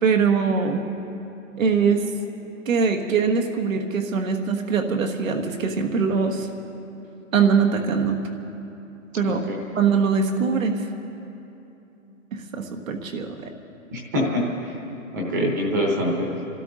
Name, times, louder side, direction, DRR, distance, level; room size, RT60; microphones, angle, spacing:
voice 1, 0.0-0.8 1.6-2.0 2.7-6.5 7.3-8.2 9.2-9.4 9.7-10.8 12.3-13.5, right 5 dB, 70° right, 4 dB, 1.6 m, -22 dB
voice 2, 9.2-9.5 13.9-14.7 15.1-16.3, equal, 15° right, -1 dB, 0.9 m, -25 dB
28.5 x 12.5 x 3.8 m, 2.9 s
hypercardioid pair, 175°, 41 cm